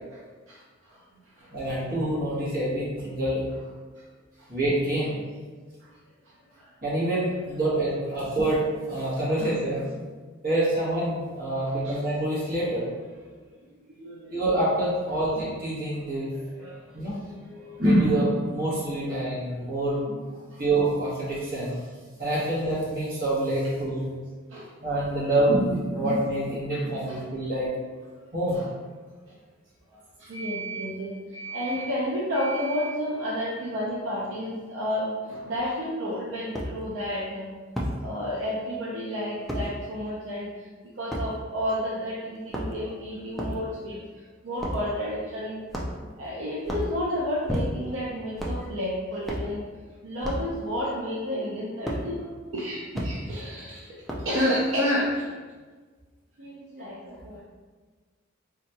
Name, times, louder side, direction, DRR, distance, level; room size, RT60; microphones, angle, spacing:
voice 1, 1.5-3.6 4.5-5.2 6.8-9.9 10.4-12.9 14.3-16.3 16.9-17.2 17.8-20.2 20.6-21.8 22.2-24.1 24.8-27.7 28.3-28.6 56.8-56.9, right 1 dB, 45° right, -8 dB, 1.2 m, -26 dB
voice 2, 11.6-12.4 13.9-14.3 15.1-15.2 16.5-16.8 17.2-17.8 24.5-24.7 26.7-27.2 28.5-28.7 30.2-37.5 38.0-40.5 41.0-44.0 44.4-45.5 46.2-49.6 50.0-52.2 52.5-53.9 54.2-55.2 56.4-57.4, equal, 70° right, -6 dB, 0.5 m, -31 dB
sound 1, 35.5-35.6 36.5-36.7 37.8-38.0 39.5-39.7 41.1-41.3 42.4-42.9 43.3-43.6 44.6-44.8 45.7-46.1 46.6-46.9 47.5-47.9 48.4-48.6 49.2-49.5 50.2-50.5 51.9-52.0 52.9-53.1 54.1-54.4, equal, ahead, 0.3 m, -30 dB
3.7 x 2.8 x 2.2 m, 1.4 s
head